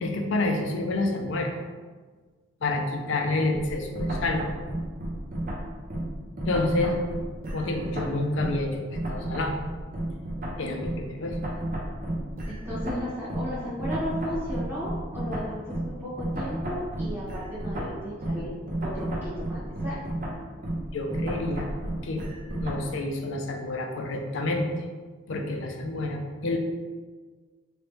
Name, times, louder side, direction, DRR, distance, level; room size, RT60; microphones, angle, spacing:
voice 1, 0.0-1.5 2.6-4.4 6.5-7.0 7.5-9.6 10.6-11.4 20.9-21.7 22.0-22.2 22.6-24.8 25.3-26.6, left 2 dB, 60° left, 3 dB, 0.5 m, -28 dB
sound 1, 3.5-8.7 8.9-22.9, right 1 dB, 40° right, 0.6 m, -32 dB
voice 2, 12.5-20.0 20.5-20.6, equal, 10° right, -12 dB, 1.4 m, -35 dB
3.2 x 2.9 x 3.1 m, 1.4 s
head